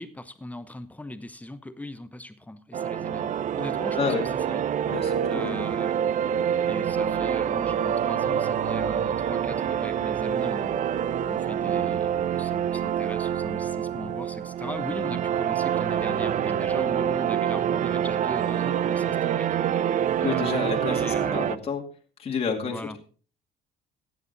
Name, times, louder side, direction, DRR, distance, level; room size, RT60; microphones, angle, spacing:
voice 1, 0.0-4.7 5.3-6.0 6.7-10.8 11.3-20.6 20.9-21.6 22.6-23.0, left 1 dB, 10° left, 11 dB, 0.9 m, -39 dB
sound 1, 2.7-21.6, right 9 dB, 50° right, 0.6 m, -26 dB
voice 2, 3.9-4.3 4.9-5.7 20.2-21.8 22.2-23.0, left 5 dB, 35° left, 1 dB, 2.3 m, -30 dB
14.0 x 9.6 x 4.0 m, 0.40 s
cardioid pair, 110°, 17 cm